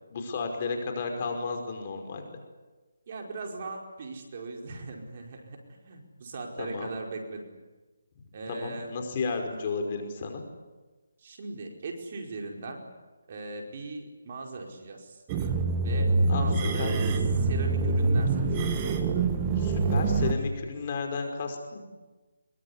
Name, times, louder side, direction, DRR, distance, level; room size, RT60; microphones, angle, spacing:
voice 1, 0.1-2.2 6.6-6.9 8.5-10.4 16.3-16.5 16.8-16.9 19.6-21.8, left 4 dB, 35° left, 4 dB, 5.3 m, -33 dB
voice 2, 3.1-5.6 5.8-7.4 8.3-8.9 11.2-12.8 13.3-15.2 15.8-16.9 17.4-18.9, right 3 dB, 40° right, 1 dB, 5.0 m, -39 dB
sound 1, 15.3-20.3, right 3 dB, 20° right, 1.9 m, -25 dB
24.5 x 23.0 x 10.0 m, 1.2 s
hypercardioid pair, 165°, 0 cm